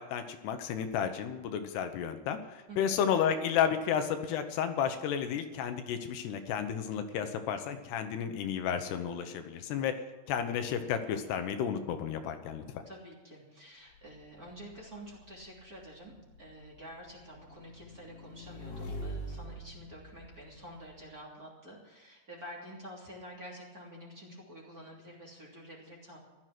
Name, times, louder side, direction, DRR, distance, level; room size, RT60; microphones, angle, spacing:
voice 1, 0.0-10.0 10.3-12.8, left 8 dB, 80° left, 7 dB, 3.1 m, -32 dB
voice 2, 2.7-3.0 12.8-26.2, equal, 25° right, -4 dB, 3.0 m, -49 dB
Motorcycle / Engine, 13.9-21.0, equal, 45° left, 2.7 m, -45 dB
15.5 x 12.5 x 6.0 m, 1.2 s
omnidirectional pair, 4.8 m